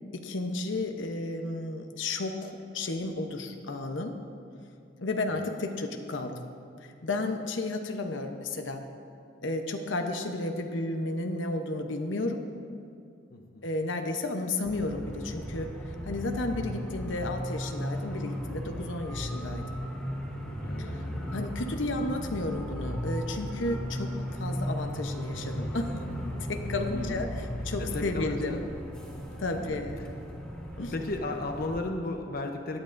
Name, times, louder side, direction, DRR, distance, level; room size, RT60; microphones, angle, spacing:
voice 1, 0.1-4.2 5.0-6.4 6.8-8.9 9.4-12.4 13.6-19.6 20.9-21.0 21.3-26.0 26.5-28.6 29.4-30.0 30.8-30.9, left 2 dB, 80° left, 5 dB, 0.8 m, -33 dB
voice 2, 13.3-13.7 20.6-20.9 26.9-27.2 27.8-28.6 29.5-29.8 30.9-32.8, left 2 dB, 55° left, 4 dB, 0.7 m, -34 dB
sound 1, 14.6-31.8, equal, 5° left, 2.1 m, -36 dB
17.5 x 10.5 x 2.6 m, 2.5 s
head